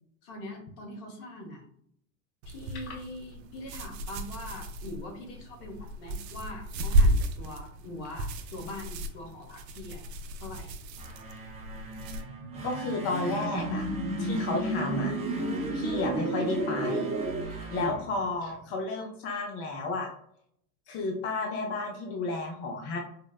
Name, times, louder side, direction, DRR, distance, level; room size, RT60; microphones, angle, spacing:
voice 1, 0.2-1.6 2.5-10.0 10.4-10.7 17.7-18.0, left 1 dB, 55° left, 2 dB, 1.3 m, -42 dB
sound 1, 2.4-12.2, right 1 dB, 85° right, 0.6 m, -32 dB
sound 2, 10.9-18.8, right 2 dB, 15° right, 0.6 m, -42 dB
sound 3, 11.9-17.4, right 1 dB, 40° right, 1.0 m, -32 dB
voice 2, 12.6-15.1 15.7-17.2 17.5-20.1 20.9-23.0, left 2 dB, 30° left, 1 dB, 0.5 m, -32 dB
4.4 x 2.0 x 2.3 m, 0.69 s
hypercardioid pair, 105°, 48 cm